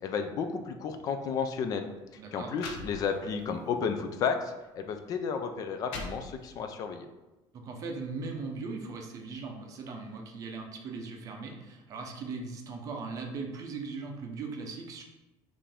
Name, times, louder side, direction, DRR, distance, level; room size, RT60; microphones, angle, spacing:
voice 1, 0.0-1.9 2.3-7.1, left 6 dB, 40° left, 7 dB, 0.3 m, -32 dB
sound 1, 1.3-1.5 2.2-2.3 2.5-3.5 4.0-4.2 5.0-5.1 5.6-6.7, left 3 dB, 75° left, 0.8 m, -42 dB
voice 2, 2.2-2.5 7.5-15.0, right 4 dB, 35° right, 3 dB, 0.6 m, -39 dB
5.5 x 2.6 x 3.4 m, 1.1 s
cardioid pair, 175°, 10 cm